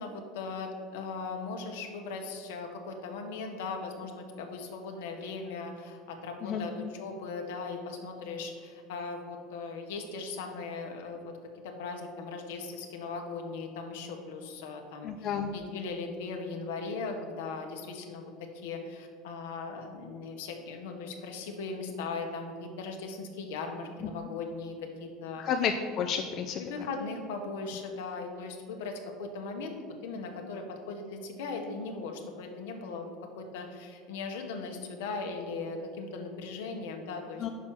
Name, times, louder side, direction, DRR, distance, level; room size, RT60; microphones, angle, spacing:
voice 1, 0.0-11.3 11.6-25.4 26.5-29.7 30.0-37.5, left 4 dB, 80° left, 3 dB, 1.0 m, -38 dB
voice 2, 15.0-15.5 24.0-24.1 25.4-26.6 37.4-37.5, left 7 dB, 50° left, 5 dB, 0.5 m, -31 dB
6.0 x 4.4 x 6.1 m, 2.1 s
hypercardioid pair, 90°, 0 cm